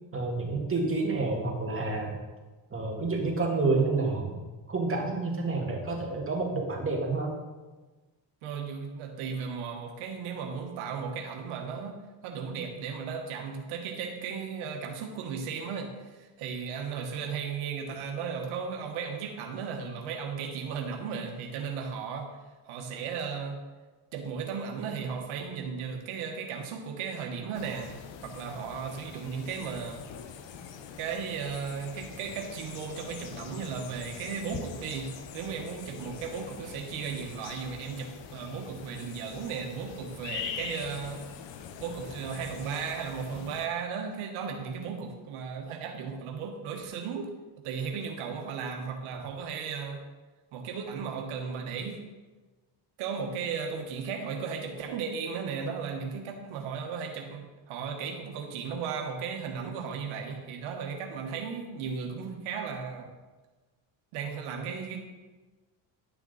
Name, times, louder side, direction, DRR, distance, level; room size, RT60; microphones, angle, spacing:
voice 1, 0.1-2.2 2.7-4.3 4.7-7.4, right 3 dB, 25° right, -1 dB, 2.2 m, -29 dB
voice 2, 8.4-12.0 12.2-22.3 22.7-23.6 24.1-27.9 28.2-30.0 31.0-41.2 41.8-47.3 47.6-50.0 50.5-52.0 53.0-57.4 57.7-63.1 64.1-65.0, right 6 dB, 90° right, 2 dB, 1.3 m, -35 dB
sound 1, 27.5-43.7, left 8 dB, 65° left, 0.9 m, -43 dB
11.0 x 6.0 x 4.0 m, 1.2 s
cardioid pair, 90°, 48 cm